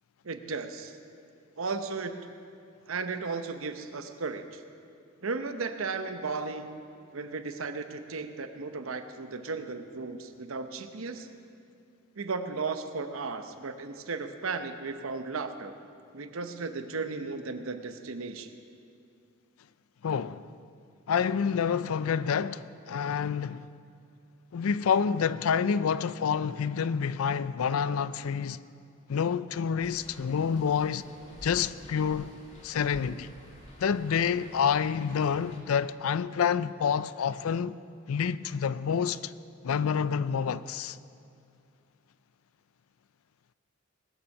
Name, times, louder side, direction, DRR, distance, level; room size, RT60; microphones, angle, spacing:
voice 1, 0.2-0.9 1.6-2.2 2.9-4.6 5.2-6.8 7.1-11.4 12.2-15.7 16.1-18.5, right 4 dB, 75° right, 0.8 m, -35 dB
voice 2, 20.0-20.5 21.1-23.7 24.5-28.6 29.1-31.1 31.4-32.3 32.6-33.3 33.8-37.8 38.1-39.3 39.6-41.0, left 7 dB, 80° left, 0.4 m, -28 dB
sound 1, 29.8-35.6, equal, 35° left, 2.2 m, -50 dB
20.5 x 7.1 x 6.5 m
head